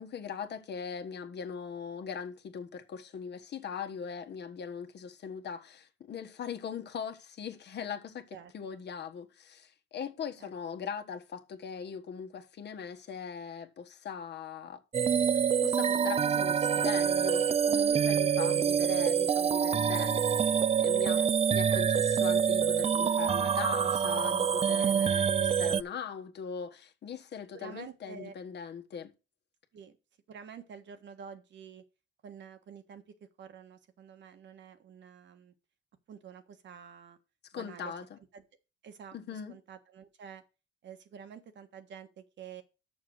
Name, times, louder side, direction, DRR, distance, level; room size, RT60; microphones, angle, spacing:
voice 1, 0.0-14.8 15.6-21.2 21.5-29.1 37.5-38.2 39.1-39.6, left 6 dB, 60° left, 1.4 m, -40 dB
voice 2, 8.3-8.8 10.4-10.5 21.2-21.9 22.2-22.3 24.8-25.2 27.5-28.3 29.7-30.0 30.3-31.8 32.2-33.0 33.4-35.5 36.1-37.2 37.5-37.9 38.3-38.4 38.8-40.4 40.8-42.6, right 7 dB, 65° right, 1.5 m, -49 dB
sound 1, 14.9-25.8, right 7 dB, 30° right, 0.4 m, -26 dB
6.7 x 6.2 x 6.3 m
cardioid pair, 90°, 20 cm